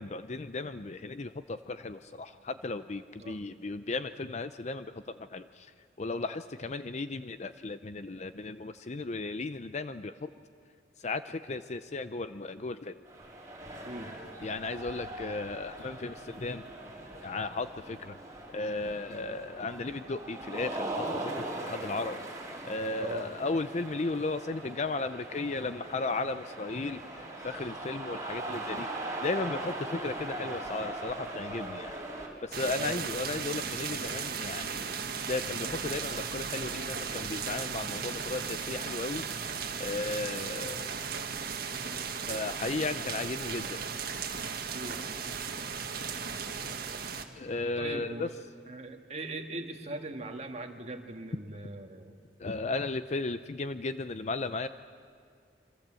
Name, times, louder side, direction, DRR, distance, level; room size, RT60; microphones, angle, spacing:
voice 1, 0.0-5.0 5.3-5.7 6.0-10.3 11.0-12.9 14.4-16.6 17.2-18.2 18.5-22.2 22.7-28.9 29.2-32.0 32.4-34.9 35.3-40.9 42.3-43.8 47.4-48.3 52.4-54.7, left 3 dB, 40° left, 11 dB, 0.6 m, -35 dB
sound 1, 13.1-32.3, right 2 dB, 20° right, 4.5 m, -40 dB
voice 2, 23.0-23.3 32.7-33.1 44.7-45.1 47.8-48.3 48.7-52.2, right 2 dB, 40° right, 4 dB, 1.8 m, -40 dB
sound 2, 32.5-47.3, right 6 dB, 55° right, 1.7 m, -36 dB
27.0 x 24.0 x 7.7 m, 2.1 s
head